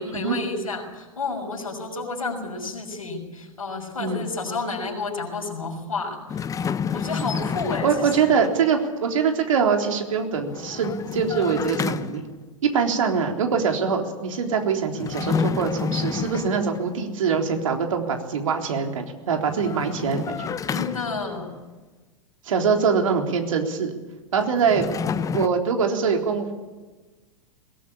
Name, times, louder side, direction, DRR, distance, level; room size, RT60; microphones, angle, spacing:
voice 1, 0.0-6.4 6.9-8.4 20.7-21.6, left 3 dB, 85° left, 1 dB, 6.2 m, -31 dB
sound 1, 6.3-8.6 10.4-12.4 14.9-17.0 19.4-21.5 24.4-25.5, left 6 dB, 20° left, 0.9 m, -29 dB
voice 2, 7.8-12.3 12.7-20.6 22.4-23.9 24.3-24.9 25.3-26.5, right 6 dB, 70° right, 3 dB, 3.7 m, -23 dB
21.5 x 18.5 x 8.5 m, 1.3 s
hypercardioid pair, 100°, 17 cm